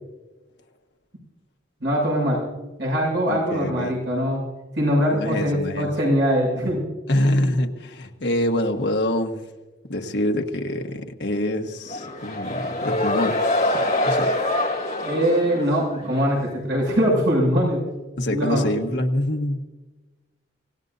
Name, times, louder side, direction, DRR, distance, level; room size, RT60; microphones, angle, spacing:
voice 1, 1.8-2.4 2.8-4.4 4.8-6.8 15.0-17.8 18.3-18.6, equal, 70° right, -3 dB, 7.0 m, -22 dB
voice 2, 3.3-4.0 5.1-5.9 7.1-9.4 9.9-13.4 13.7-14.3 18.2-19.6, left 1 dB, 65° left, 4 dB, 1.4 m, -25 dB
sound 1, 11.9-16.4, left 1 dB, 40° left, 2.9 m, -25 dB
25.0 x 18.5 x 2.7 m, 1.2 s
head